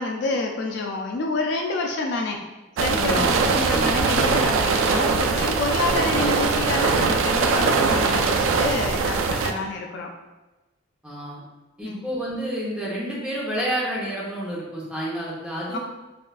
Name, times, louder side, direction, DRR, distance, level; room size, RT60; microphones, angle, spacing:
voice 1, 0.0-2.4 2.8-10.1 11.8-12.0 15.7-15.8, left 3 dB, 55° left, 2 dB, 0.3 m, -28 dB
sound 1, 2.8-9.5, right 4 dB, 75° right, 0.3 m, -21 dB
voice 2, 2.9-3.2 3.7-3.8 11.0-11.4 11.8-15.8, right 1 dB, 5° right, -6 dB, 0.7 m, -29 dB
4.2 x 2.4 x 2.3 m, 1.1 s
head